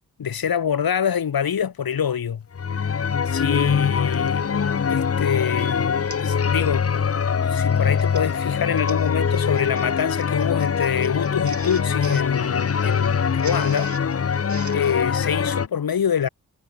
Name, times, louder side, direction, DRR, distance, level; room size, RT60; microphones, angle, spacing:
voice 1, 0.2-2.4 3.3-4.6 4.9-7.1 7.3-13.9 14.7-16.3, left 8 dB, 85° left, 2.5 m, -25 dB
sound 1, 2.5-15.7, left 6 dB, 40° left, 0.8 m, -23 dB
Printer, 4.1-4.4 5.0-5.2 5.5-5.6 6.1-6.4 6.7-7.0 7.7-15.0, right 4 dB, 55° right, 5.3 m, -43 dB
cardioid pair, 50°, 35 cm